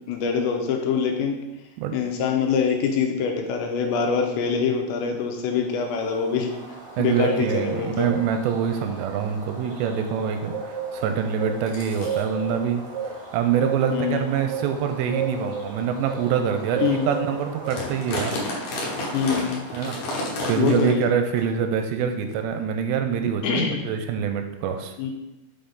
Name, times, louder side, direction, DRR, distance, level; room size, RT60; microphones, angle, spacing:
voice 1, 0.1-1.4 1.9-6.5 7.0-8.1 13.9-14.2 16.8-17.1 19.1-19.7 20.6-21.1 23.4-23.8 25.0-25.1, left 6 dB, 85° left, 3 dB, 3.0 m, -24 dB
sound 1, 5.5-20.2, right 5 dB, 50° right, 1.7 m, -35 dB
voice 2, 7.0-12.8 13.3-18.4 19.7-20.2 20.4-24.9, right 7 dB, 85° right, 6 dB, 2.6 m, -25 dB
sound 2, 7.8-7.9 8.3-8.6 9.1-9.2 9.6-9.9 11.0-11.1 11.7-12.2 13.0-13.1 13.7-13.9 14.5-14.6 15.3-15.5 16.1-16.2 16.6-16.7 16.9-17.1 17.4-21.1 21.4-21.5 22.3-22.4, left 1 dB, 65° left, 2.1 m, -32 dB
6.4 x 5.8 x 3.9 m, 0.96 s
omnidirectional pair, 5.1 m